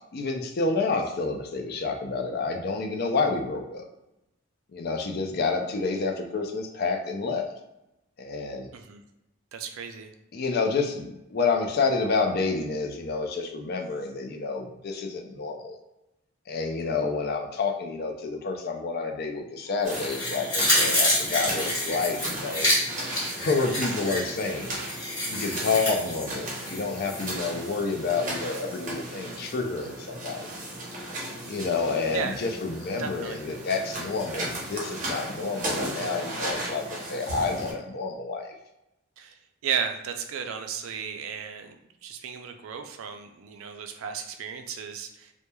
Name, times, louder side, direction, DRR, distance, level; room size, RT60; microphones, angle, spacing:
voice 1, 0.1-3.8 4.7-7.4 8.2-8.7 10.3-15.8 16.5-22.7 23.3-24.8 25.3-30.5 31.5-38.5, left 4 dB, 50° left, 3 dB, 0.4 m, -29 dB
voice 2, 9.5-10.1 25.9-26.0 32.1-32.4 33.0-33.4 39.2-45.3, right 7 dB, 80° right, 6 dB, 0.4 m, -34 dB
sound 1, 19.8-37.7, right 1 dB, 40° right, 0.7 m, -36 dB
sound 2, 19.9-27.3 27.7-27.8, left 1 dB, 20° left, 1.1 m, -28 dB
3.0 x 2.1 x 2.2 m, 0.90 s
head